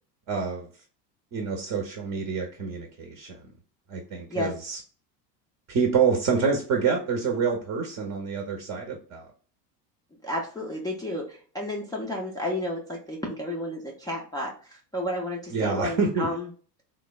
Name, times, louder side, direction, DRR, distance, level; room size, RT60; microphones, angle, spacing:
voice 1, 0.3-0.7 1.3-3.4 3.9-4.8 5.7-9.3 15.5-16.3, right 5 dB, 35° right, 2 dB, 0.7 m, -27 dB
voice 2, 10.2-16.5, left 1 dB, 10° left, -4 dB, 0.4 m, -32 dB
3.1 x 2.0 x 2.2 m, 0.41 s
hypercardioid pair, 90°, 49 cm